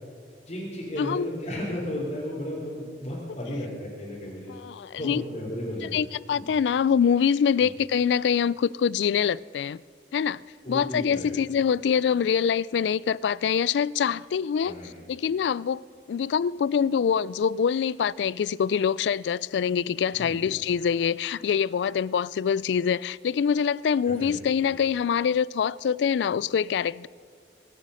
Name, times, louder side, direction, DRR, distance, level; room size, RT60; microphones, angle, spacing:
voice 1, 0.5-4.6 5.0-6.0 6.3-6.4 7.6-7.7 10.6-11.3 14.6-14.9 20.1-20.5 24.0-24.7, left 1 dB, 40° left, 3.1 m, -34 dB
voice 2, 4.5-5.2 5.8-9.8 10.1-10.4 10.7-14.7 15.1-15.8 16.1-27.1, left 7 dB, 75° left, 0.3 m, -25 dB
23.5 x 8.4 x 6.3 m
head